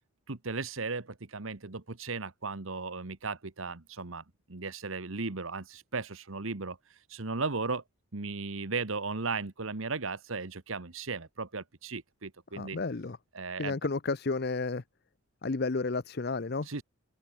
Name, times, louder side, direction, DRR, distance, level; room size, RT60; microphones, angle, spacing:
voice 1, 0.3-4.2 4.5-7.8 8.1-12.8 13.3-13.7 16.6-16.8, right 4 dB, 70° right, 1.4 m, -36 dB
voice 2, 12.5-13.2 13.6-14.8 15.4-16.7, left 3 dB, 50° left, 0.7 m, -32 dB
head